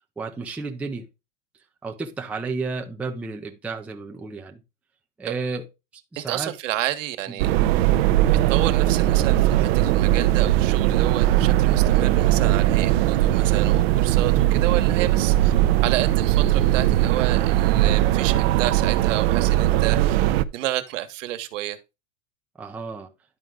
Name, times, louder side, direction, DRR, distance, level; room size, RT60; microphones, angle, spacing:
voice 1, 0.2-1.1 1.8-4.6 5.2-5.7 6.1-6.5 22.6-23.1, right 4 dB, 5° right, 0.5 m, -32 dB
voice 2, 6.2-7.5 8.5-15.5 15.8-20.2 20.5-21.8, right 14 dB, 70° right, 1.4 m, -30 dB
sound 1, 7.4-20.4, right 14 dB, 50° right, 0.7 m, -19 dB
11.0 x 4.7 x 3.7 m
supercardioid pair, 160°, 38 cm